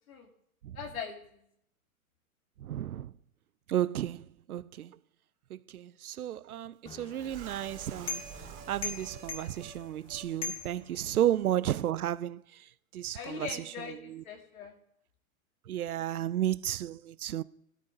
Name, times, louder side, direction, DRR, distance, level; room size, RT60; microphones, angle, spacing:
voice 1, 0.7-1.2 13.1-14.7, left 7 dB, 80° left, 2.5 m, -40 dB
voice 2, 2.6-3.1 3.7-5.0 5.5-8.2 8.7-12.4 12.9-13.5 14.1-14.2 15.7-17.4, right 12 dB, 90° right, 0.6 m, -33 dB
sound 1, 6.9-11.6, left 4 dB, 15° left, 1.5 m, -42 dB
sound 2, 7.1-10.3 10.6-10.7 11.1-11.2, right 6 dB, 40° right, 4.6 m, -48 dB
16.5 x 13.0 x 2.5 m
hypercardioid pair, 125°, 42 cm